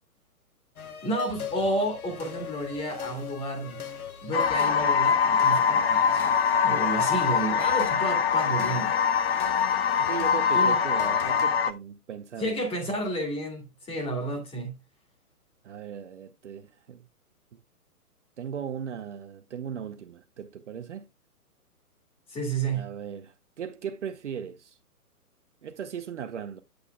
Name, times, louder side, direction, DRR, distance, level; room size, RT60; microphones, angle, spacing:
sound 1, 0.8-11.5, left 6 dB, 70° left, 1.2 m, -40 dB
voice 1, 1.0-3.8 4.2-6.3 6.6-8.9 10.5-10.8 12.4-14.7 22.3-22.9, right 1 dB, 10° left, 1.9 m, -31 dB
sound 2, 4.3-11.7, left 7 dB, 40° left, 0.7 m, -23 dB
voice 2, 10.0-12.6 15.6-17.0 17.5-17.6 18.4-21.1 22.7-24.8 25.6-26.6, right 8 dB, 50° right, 0.9 m, -38 dB
8.2 x 8.1 x 2.2 m
figure-of-eight pair, 125°, 45 cm